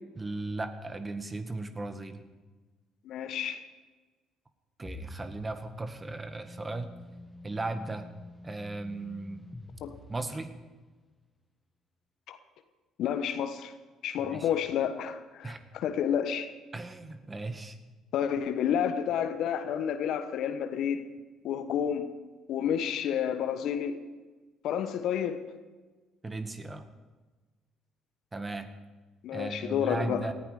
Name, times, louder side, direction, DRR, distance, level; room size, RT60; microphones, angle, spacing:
voice 1, 0.2-2.2 4.8-6.9 7.4-8.1 8.4-9.5 10.1-10.5 14.2-14.5 15.4-15.6 16.7-17.8 26.2-26.9 28.3-28.7 29.3-30.3, right 2 dB, 25° right, 8 dB, 1.9 m, -36 dB
voice 2, 3.0-3.6 9.8-9.9 12.3-12.4 13.0-13.7 14.0-16.5 18.1-21.0 21.4-22.1 22.5-24.0 24.6-25.4 29.2-30.2, left 8 dB, 65° left, 9 dB, 1.3 m, -30 dB
sound 1, 4.8-10.8, left 1 dB, 10° left, 2.1 m, -48 dB
18.5 x 15.0 x 5.1 m, 1.3 s
hypercardioid pair, 50°, 0 cm